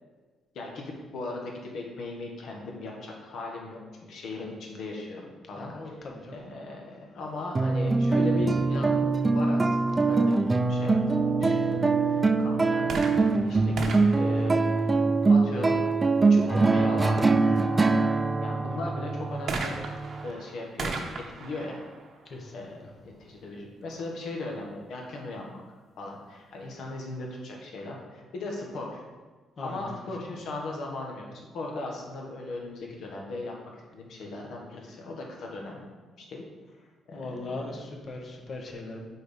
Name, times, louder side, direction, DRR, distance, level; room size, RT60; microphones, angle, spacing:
voice 1, 0.5-5.2 5.5-6.0 6.3-9.0 9.3-12.9 13.3-14.6 15.3-15.8 16.3-17.8 18.4-19.8 20.2-21.8 22.5-25.6 26.0-29.0 29.6-35.9 36.2-36.4 37.1-37.5, left 2 dB, 70° left, 0 dB, 1.5 m, -38 dB
voice 2, 5.6-6.3 18.0-18.3 22.2-22.5 29.6-30.0 37.1-39.1, left 2 dB, 45° left, 1 dB, 1.3 m, -39 dB
sound 1, 7.5-20.3, right 3 dB, 25° right, 0.4 m, -23 dB
sound 2, 12.8-15.4 19.5-23.1 23.9-24.0, right 3 dB, 60° right, 1.0 m, -37 dB
6.2 x 4.6 x 5.3 m, 1.4 s
cardioid pair, 90°, 0 cm